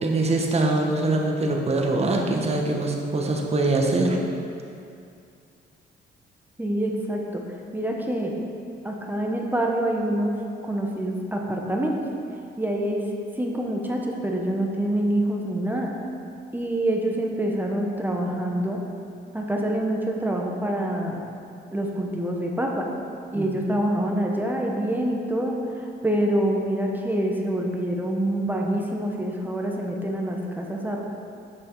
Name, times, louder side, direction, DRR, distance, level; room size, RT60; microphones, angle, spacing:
voice 1, 0.0-4.2 23.3-23.6, right 2 dB, 30° right, 1 dB, 1.2 m, -23 dB
voice 2, 6.6-7.4 7.7-8.3 8.8-10.3 10.6-12.0 12.6-13.0 13.4-15.9 16.5-18.8 19.3-21.2 21.7-22.9 23.3-25.6 26.0-31.0, right 1 dB, 10° right, 0 dB, 1.0 m, -26 dB
7.8 x 6.2 x 4.6 m, 2.4 s
cardioid pair, 90°, 20 cm